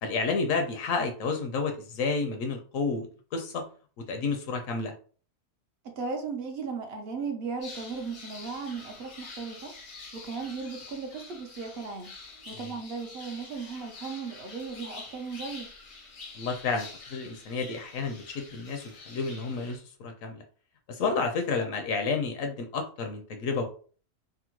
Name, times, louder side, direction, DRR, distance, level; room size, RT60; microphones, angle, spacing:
voice 1, 0.0-3.6 4.1-4.9 12.5-12.7 16.3-20.4 20.9-23.6, left 4 dB, 70° left, 0.9 m, -31 dB
voice 2, 5.8-9.7 10.1-12.1 12.5-15.7, right 5 dB, 60° right, 0.7 m, -36 dB
sound 1, 7.6-19.8, left 3 dB, 90° left, 1.5 m, -46 dB
3.5 x 2.0 x 2.9 m
omnidirectional pair, 1.6 m